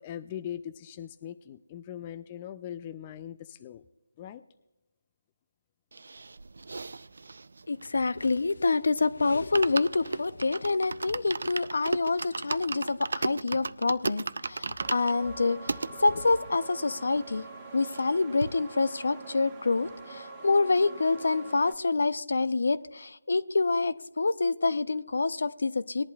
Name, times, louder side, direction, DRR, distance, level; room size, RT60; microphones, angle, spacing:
voice 1, 0.0-3.8 4.2-4.4, left 10 dB, 20° left, 11 dB, 0.3 m, -40 dB
sound 1, 5.9-8.7 9.0-9.1 9.4-15.9 16.5-16.6 16.7-16.8 17.2-18.1 18.4-18.5, right 3 dB, 60° right, 0.5 m, -36 dB
voice 2, 7.7-17.5 17.7-26.0, left 3 dB, 60° left, 14 dB, 0.7 m, -27 dB
sound 2, 14.8-21.7, right 4 dB, 10° right, 1.4 m, -44 dB
20.0 x 11.0 x 2.4 m, 0.95 s
figure-of-eight pair, 170°, 0 cm